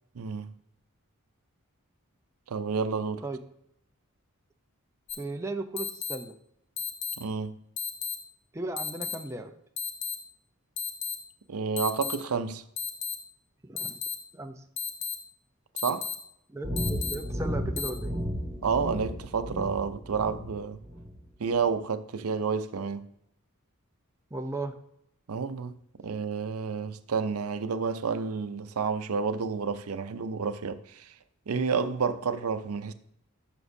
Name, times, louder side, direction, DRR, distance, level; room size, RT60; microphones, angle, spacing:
voice 1, 0.2-0.5 2.5-3.2 7.2-7.6 11.5-12.6 15.8-16.1 18.6-20.8 21.4-23.1 25.3-31.1 31.5-32.9, right 5 dB, 85° right, 0.6 m, -30 dB
sound 1, 5.1-5.2 5.8-6.2 6.8-7.2 7.8-8.2 8.8-9.2 9.8-10.2 10.8-11.2 11.8-12.1 12.8-13.1 13.8-14.1 14.8-15.1 15.8-16.1 16.8-17.1 17.8-17.9, left 7 dB, 55° left, 0.9 m, -32 dB
voice 2, 5.2-6.3 8.5-9.5 13.6-14.0 14.3-14.6 16.5-18.1 24.3-24.7, right 2 dB, 15° right, 0.5 m, -36 dB
sound 2, 16.6-21.2, equal, 35° right, 2.5 m, -34 dB
11.0 x 6.0 x 2.7 m
head